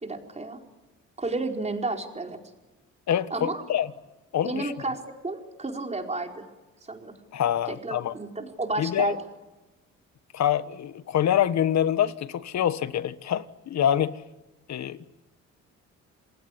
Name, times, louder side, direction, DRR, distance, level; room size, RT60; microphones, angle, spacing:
voice 1, 0.0-0.6 1.2-2.4 3.3-3.6 4.4-6.5 6.9-7.2 7.7-9.2, right 3 dB, 20° right, 4.7 m, -31 dB
voice 2, 3.1-3.9 4.3-4.7 7.3-8.1 8.8-9.2 10.3-14.2 14.7-15.1, left 10 dB, 65° left, 1.4 m, -25 dB
28.5 x 20.0 x 9.9 m
cardioid pair, 90°, 30 cm